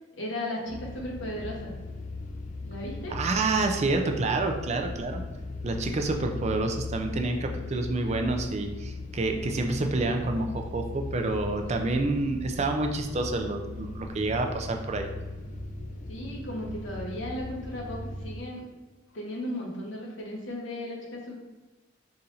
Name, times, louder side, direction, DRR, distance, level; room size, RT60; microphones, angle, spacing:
voice 1, 0.2-1.7 2.7-3.2 16.1-18.7 19.1-21.4, left 1 dB, 75° left, -2 dB, 1.1 m, -35 dB
sound 1, 0.7-18.4, left 3 dB, 40° left, 0.4 m, -38 dB
voice 2, 3.1-5.2 5.6-15.1, right 2 dB, 35° right, 4 dB, 0.4 m, -28 dB
4.2 x 2.5 x 3.9 m, 1.2 s
head